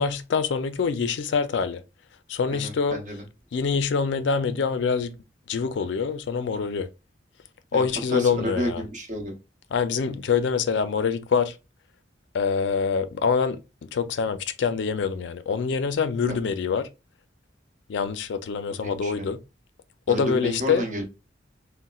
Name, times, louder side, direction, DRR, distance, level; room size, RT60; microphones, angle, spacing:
voice 1, 0.0-1.8 2.3-3.0 3.5-5.1 5.5-6.9 7.7-8.8 9.7-11.6 12.3-13.6 13.9-16.9 17.9-19.4 20.1-20.8, left 5 dB, 70° left, 0.4 m, -25 dB
voice 2, 2.5-3.2 7.7-9.3 18.8-19.3 20.1-21.0, equal, 45° right, 0.9 m, -31 dB
4.0 x 2.1 x 2.3 m
head